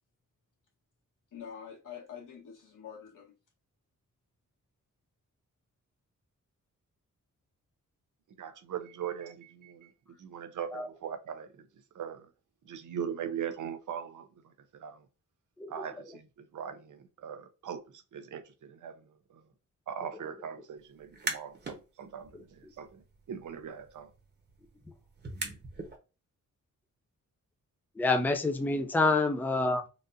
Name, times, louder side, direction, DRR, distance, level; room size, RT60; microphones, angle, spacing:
voice 1, 1.3-3.3, left 7 dB, 80° left, 1.8 m, -46 dB
voice 2, 8.4-9.9 10.2-11.7 11.9-12.3 12.7-15.1 15.7-19.4 19.9-24.1, right 8 dB, 70° right, 0.7 m, -40 dB
voice 3, 15.6-15.9 28.0-29.8, left 3 dB, 5° left, 0.5 m, -27 dB
sound 1, 21.0-21.8 22.2-26.0, right 3 dB, 35° right, 1.0 m, -41 dB
4.0 x 2.5 x 2.5 m
wide cardioid pair, 125°, 31 cm